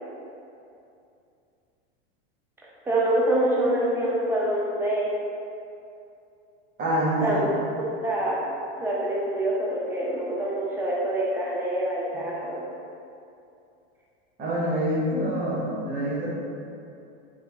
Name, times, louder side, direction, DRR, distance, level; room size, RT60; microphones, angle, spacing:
voice 1, 2.9-5.1 7.2-8.4 8.8-12.6, right 1 dB, 5° right, -5 dB, 0.4 m, -26 dB
voice 2, 6.8-7.5 14.4-16.3, equal, 30° right, -7 dB, 0.8 m, -26 dB
3.2 x 2.1 x 3.7 m, 2.6 s
supercardioid pair, 135°, 31 cm